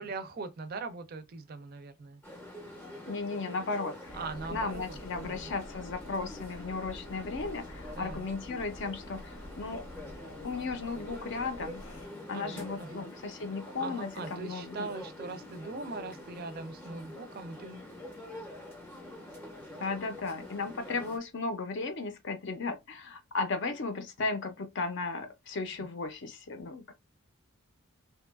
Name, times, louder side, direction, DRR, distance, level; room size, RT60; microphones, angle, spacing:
voice 1, 0.0-2.2 4.1-5.5 8.0-8.3 12.3-13.1 13.8-17.9 25.8-25.9, right 3 dB, 45° right, 0.4 m, -41 dB
sound 1, 2.2-21.2, left 1 dB, 10° left, 0.5 m, -46 dB
voice 2, 3.1-4.2 4.5-9.8 10.4-11.8 12.3-14.9 19.8-26.9, left 3 dB, 55° left, 0.5 m, -35 dB
sound 2, 4.0-12.1, left 1 dB, 80° left, 0.9 m, -47 dB
2.8 x 2.3 x 2.3 m
head